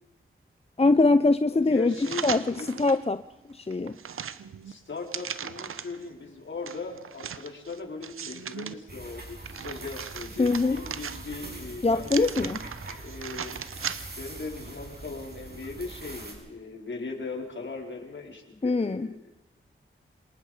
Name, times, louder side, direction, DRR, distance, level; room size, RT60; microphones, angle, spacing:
voice 1, 0.8-1.9 2.2-3.2 3.5-4.0 10.4-10.8 11.8-12.6 18.6-19.1, left 3 dB, 30° left, 11 dB, 0.8 m, -23 dB
voice 2, 1.5-2.7 4.6-12.3 13.0-13.6 14.2-19.2, left 3 dB, 65° left, 1 dB, 4.6 m, -39 dB
sound 1, 1.9-3.0 3.5-6.0 6.7-8.7 9.2-11.5 12.0-14.3 14.7-14.8, right 7 dB, 85° right, 0.9 m, -38 dB
sound 2, 8.9-16.3, right 2 dB, 50° right, 7.2 m, -43 dB
26.5 x 19.0 x 5.2 m, 0.98 s
cardioid pair, 50°, 21 cm